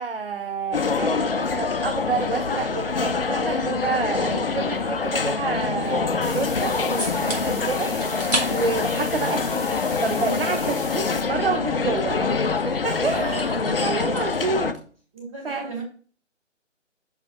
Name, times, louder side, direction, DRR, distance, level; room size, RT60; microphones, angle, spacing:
voice 1, 0.0-12.2 12.7-14.8 15.4-15.7, right 4 dB, 50° right, 6 dB, 0.7 m, -29 dB
sound 1, 0.7-14.7, left 4 dB, 50° left, 0.5 m, -25 dB
voice 2, 4.3-4.7 11.7-11.9 15.1-15.8, right 3 dB, 25° right, -2 dB, 2.6 m, -38 dB
sound 2, 6.2-11.2, left 2 dB, 5° left, 0.9 m, -38 dB
sound 3, 7.0-7.4 7.8-8.4 8.7-10.1 10.3-14.5, right 1 dB, 90° right, 3.9 m, -34 dB
6.2 x 4.2 x 5.4 m, 0.42 s
figure-of-eight pair, 155°, 38 cm